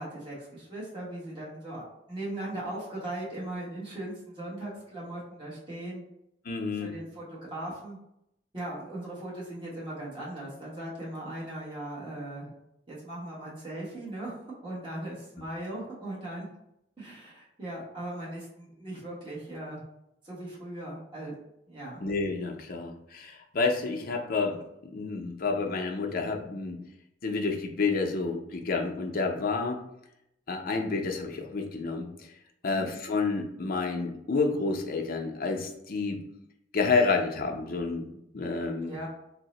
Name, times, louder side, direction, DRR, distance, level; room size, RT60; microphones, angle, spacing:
voice 1, 0.0-6.0 6.7-8.0 8.5-12.5 12.9-14.4 14.6-16.5 17.0-19.8 20.2-21.3 21.7-22.0 32.6-32.9 38.8-39.1, right 1 dB, 30° right, -7 dB, 1.0 m, -38 dB
voice 2, 6.4-6.9 22.0-24.6 24.9-26.8 27.2-29.8 30.5-32.1 32.6-36.2 36.7-38.1 38.3-38.9, left 4 dB, 55° left, 2 dB, 0.5 m, -29 dB
2.7 x 2.0 x 4.0 m, 0.81 s
head